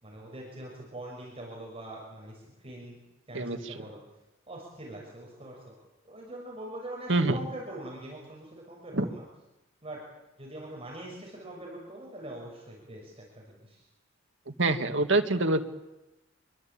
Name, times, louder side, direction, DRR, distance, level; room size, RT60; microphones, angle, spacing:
voice 1, 0.0-3.0 3.3-4.0 4.5-5.7 6.0-9.2 9.8-10.0 10.4-13.8, right 1 dB, 30° right, -2 dB, 6.6 m, -43 dB
voice 2, 3.3-3.7 7.1-7.4 8.9-9.1 14.5-15.6, right 2 dB, 65° right, 7 dB, 2.0 m, -26 dB
26.5 x 23.0 x 8.7 m, 0.97 s
head